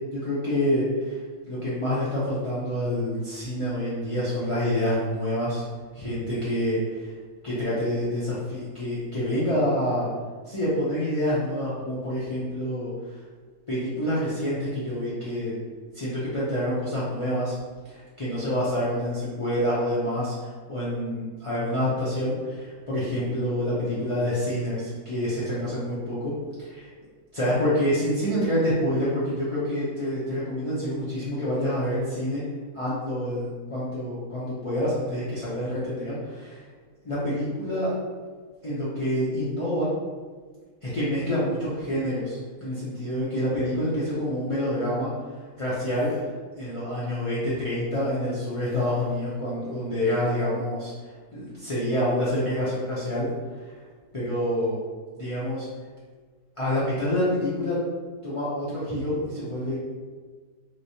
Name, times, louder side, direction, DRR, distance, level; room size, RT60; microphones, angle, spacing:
voice 1, 0.1-1.2 1.5-5.6 5.9-7.1 7.4-10.1 10.5-12.9 13.7-15.5 15.9-17.6 17.9-26.9 27.3-32.4 32.7-36.6 37.0-37.9 38.6-39.9 40.8-45.1 45.6-46.1 46.6-50.9 51.3-53.3 54.1-54.8 55.2-55.7 56.6-57.8 58.2-59.8, equal, 45° left, -10 dB, 0.4 m, -27 dB
sound 1, 45.8-46.3 48.6-49.3, left 2 dB, 75° right, 1.1 m, -42 dB
3.2 x 3.1 x 2.7 m, 1.5 s
omnidirectional pair, 1.6 m